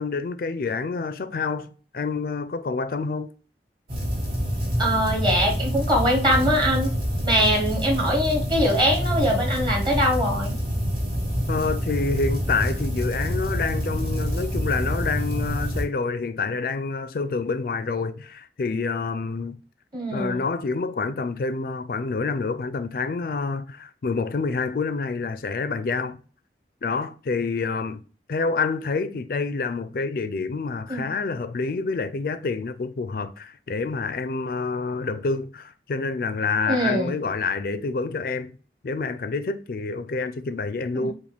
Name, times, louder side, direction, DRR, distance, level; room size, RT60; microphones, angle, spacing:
voice 1, 0.0-3.3 11.5-19.6 20.1-26.2 26.8-28.0 28.3-38.6 38.8-41.1, left 4 dB, 50° left, 0.4 m, -27 dB
sound 1, 3.9-15.8, equal, 50° right, 2.0 m, -26 dB
voice 2, 4.8-6.9 7.2-10.5 19.9-20.4 30.9-31.1 36.7-37.1 40.9-41.1, equal, 25° right, 1.1 m, -22 dB
4.9 x 2.2 x 3.3 m
head